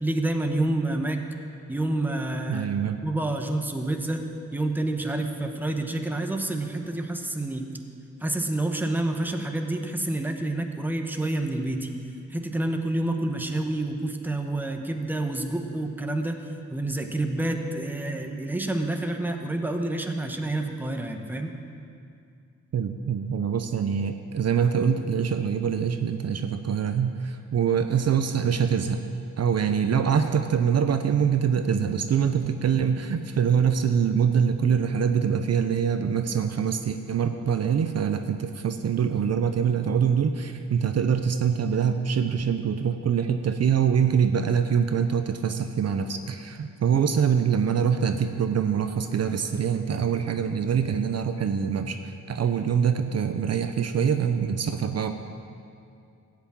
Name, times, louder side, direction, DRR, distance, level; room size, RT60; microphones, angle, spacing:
voice 1, 0.0-1.2 1.7-2.7 2.9-7.7 8.2-11.9 12.3-21.5, right 2 dB, 5° right, 4 dB, 1.0 m, -28 dB
voice 2, 2.5-3.0 22.7-29.0 29.4-55.1, right 7 dB, 55° right, 8 dB, 0.7 m, -24 dB
15.0 x 6.0 x 8.6 m, 2.4 s
wide cardioid pair, 115°, 30 cm